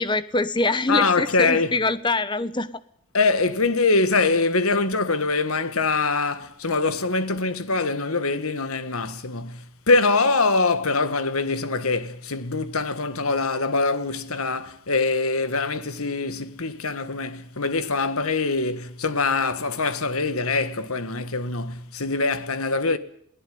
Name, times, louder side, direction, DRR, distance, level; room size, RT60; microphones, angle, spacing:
voice 1, 0.0-2.7, left 2 dB, 20° left, 1.0 m, -24 dB
voice 2, 0.9-1.7 3.1-23.0, left 3 dB, 85° left, 1.7 m, -23 dB
22.0 x 17.0 x 9.5 m
head